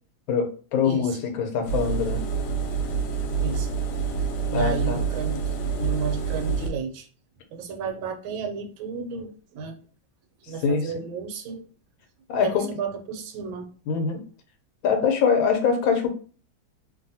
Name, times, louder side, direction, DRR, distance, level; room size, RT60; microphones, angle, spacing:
voice 1, 0.3-2.2 4.5-5.0 10.6-10.9 12.3-12.7 13.9-14.2 14.8-16.1, left 6 dB, 90° left, 5 dB, 1.4 m, -23 dB
voice 2, 0.8-1.2 3.4-3.7 4.5-7.1 7.5-9.7 10.5-11.6 12.4-13.7, right 5 dB, 80° right, 4 dB, 1.4 m, -32 dB
Engine, 1.7-6.7, right 6 dB, 70° left, 1.0 m, -27 dB
2.9 x 2.6 x 2.6 m, 0.40 s
omnidirectional pair, 2.1 m